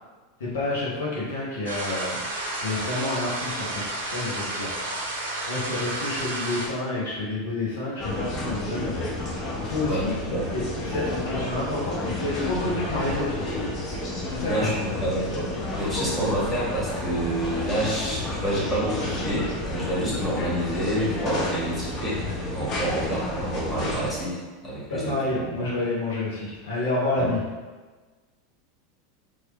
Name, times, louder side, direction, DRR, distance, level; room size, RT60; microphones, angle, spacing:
voice 1, 0.4-2.2 2.6-4.7 5.5-9.0 9.6-10.1 10.5-13.6 14.3-15.0 24.9-27.4, left 2 dB, 70° left, -6 dB, 0.8 m, -29 dB
sound 1, 1.7-6.7, right 1 dB, 75° right, 0.6 m, -31 dB
sound 2, 8.0-24.1, left 2 dB, 40° left, 0.7 m, -31 dB
voice 2, 9.8-10.5 14.4-25.7 27.2-27.3, right 1 dB, 10° left, -8 dB, 1.5 m, -28 dB
3.1 x 2.4 x 3.0 m, 1.3 s
figure-of-eight pair, 85°, 0 cm